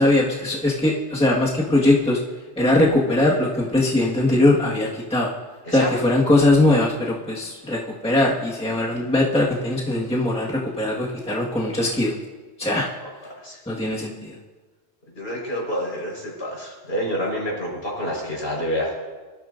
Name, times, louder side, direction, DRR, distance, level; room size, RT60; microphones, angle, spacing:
voice 1, 0.0-2.2 2.6-5.3 5.7-12.1 12.6-12.9 13.7-14.3, left 2 dB, 5° left, -4 dB, 1.6 m, -20 dB
voice 2, 15.1-18.9, equal, 60° left, -3 dB, 5.0 m, -28 dB
23.5 x 13.5 x 2.6 m, 1.3 s
omnidirectional pair, 1.2 m